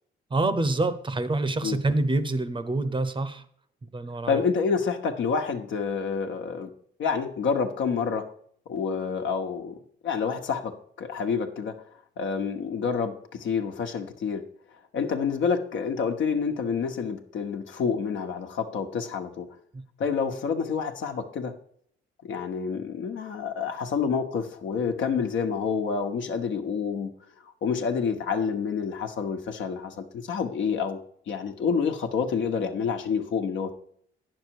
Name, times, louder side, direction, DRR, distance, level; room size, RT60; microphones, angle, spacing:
voice 1, 0.3-3.4 3.9-4.4 19.7-19.8, right 2 dB, 25° right, 12 dB, 0.7 m, -26 dB
voice 2, 4.3-6.7 7.0-8.2 8.7-9.8 10.0-10.7 11.0-11.7 12.2-14.4 14.9-19.5 20.0-21.5 22.2-27.1 27.6-31.0 31.3-33.7, left 6 dB, 70° left, 4 dB, 1.2 m, -28 dB
9.1 x 6.6 x 4.7 m, 0.64 s
cardioid pair, 90°, 20 cm